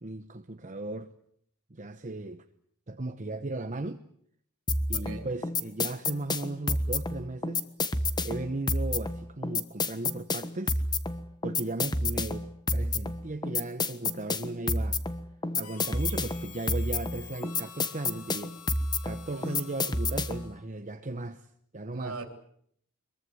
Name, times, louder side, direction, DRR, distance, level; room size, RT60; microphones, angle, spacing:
voice 1, 0.0-1.1 1.7-2.4 2.9-4.0 4.9-7.6 8.2-10.8 11.4-15.1 15.5-18.5 19.0-22.2, right 2 dB, 35° right, 1.0 m, -36 dB
sound 1, 4.7-20.5, left 2 dB, 20° left, 1.3 m, -30 dB
voice 2, 4.9-5.3 19.3-19.6 21.9-22.3, right 3 dB, 65° right, 3.6 m, -40 dB
Harmonica, 15.6-20.7, left 9 dB, 85° left, 2.7 m, -49 dB
23.5 x 22.5 x 8.0 m
head